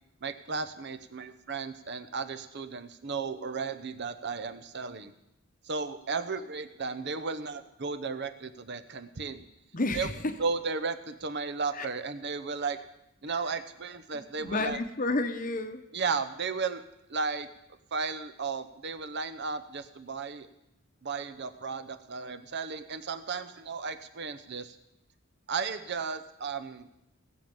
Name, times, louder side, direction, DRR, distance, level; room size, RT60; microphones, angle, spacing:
voice 1, 0.2-5.1 5.6-9.5 9.9-10.1 10.4-12.8 13.2-14.8 15.9-16.8 17.1-17.5 17.9-20.5 21.0-24.8 25.5-26.9, right 4 dB, 50° right, 11 dB, 0.8 m, -34 dB
voice 2, 9.7-10.3 11.7-11.9 14.1-15.8, left 2 dB, 40° left, 8 dB, 0.9 m, -31 dB
19.5 x 7.3 x 5.3 m, 0.86 s
head